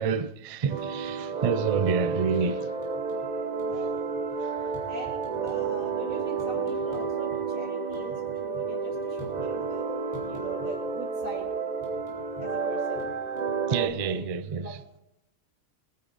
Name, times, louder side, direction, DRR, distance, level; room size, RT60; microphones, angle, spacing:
voice 1, 0.0-2.7 13.7-14.8, right 6 dB, 55° right, 0.4 m, -28 dB
sound 1, 0.7-13.9, right 5 dB, 35° right, 0.9 m, -31 dB
sound 2, 0.8-1.2 1.5-2.5 2.8-3.3 3.5-7.4 7.7-9.8 10.1-11.0 11.2-14.1, left 1 dB, 20° left, 3.9 m, -48 dB
voice 2, 3.7-4.0 4.9-9.8 10.2-11.5 12.4-13.1 13.6-14.3 14.6-14.8, right 2 dB, 80° right, 3.4 m, -40 dB
22.5 x 9.6 x 4.0 m
omnidirectional pair, 1.4 m